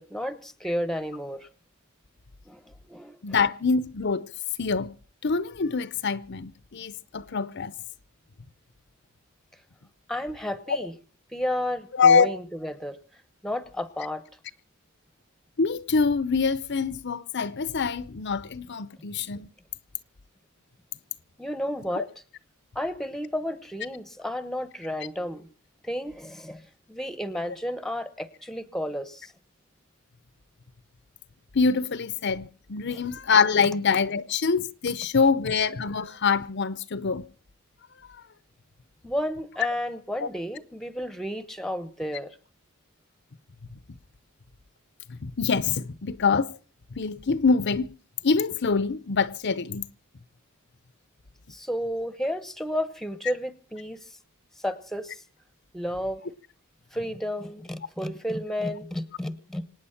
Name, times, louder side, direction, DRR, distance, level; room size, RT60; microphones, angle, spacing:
voice 1, 0.0-1.5 2.5-3.2 10.1-10.9 11.3-13.0 13.4-14.2 21.4-22.1 22.7-25.5 25.8-29.3 32.9-33.0 39.0-42.4 51.5-54.0 54.6-55.2 55.7-56.2 56.9-59.7, equal, ahead, 1.0 m, -32 dB
voice 2, 3.2-4.2 4.6-4.9 5.2-7.7 12.0-12.3 15.6-19.5 21.9-22.0 31.5-37.2 40.2-40.3 45.1-46.5 47.0-47.9 48.2-49.8, left 5 dB, 55° left, 0.7 m, -24 dB
25.5 x 9.5 x 5.8 m
head